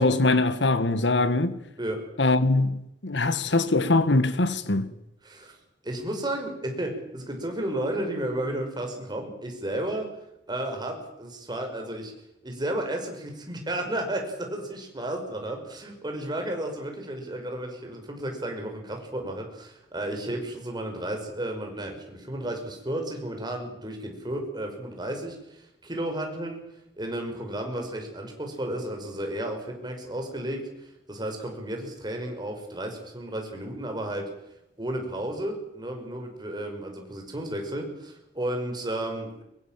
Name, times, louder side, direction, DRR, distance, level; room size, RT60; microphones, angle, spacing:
voice 1, 0.0-1.6 2.2-4.9, left 2 dB, 85° left, 1.5 m, -22 dB
voice 2, 5.2-5.6 5.8-10.1 10.5-12.1 12.4-26.6 27.0-34.3 34.8-39.4, right 1 dB, 25° right, 5.5 m, -33 dB
23.0 x 22.5 x 7.5 m
head